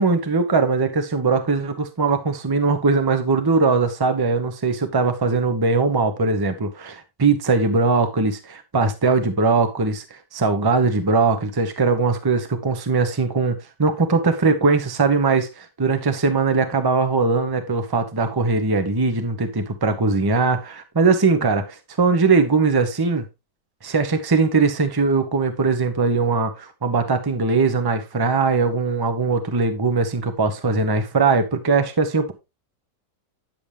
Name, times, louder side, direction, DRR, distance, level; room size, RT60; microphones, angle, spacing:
voice 1, 0.0-23.2 23.8-32.3, right 4 dB, 20° right, 0.7 m, -20 dB
9.8 x 7.1 x 3.3 m
omnidirectional pair, 1.9 m